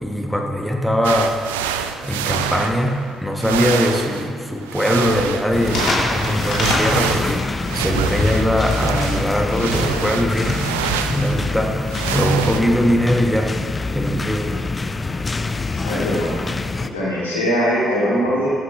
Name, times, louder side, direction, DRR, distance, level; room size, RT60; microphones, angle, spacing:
voice 1, 0.0-1.4 2.0-7.4 7.7-10.6 11.1-11.8 12.1-13.5 13.9-14.5, equal, ahead, 1 dB, 1.3 m, -21 dB
sound 1, 1.0-3.1 3.4-12.6, right 9 dB, 75° right, 0.3 m, -26 dB
sound 2, 5.5-16.9, left 3 dB, 30° left, 0.5 m, -25 dB
sound 3, 5.7-11.1, left 2 dB, 50° left, 2.8 m, -26 dB
voice 2, 15.7-16.4 16.8-18.5, equal, 85° left, -7 dB, 2.2 m, -21 dB
13.0 x 9.1 x 3.1 m, 2.2 s
figure-of-eight pair, 40°, 0 cm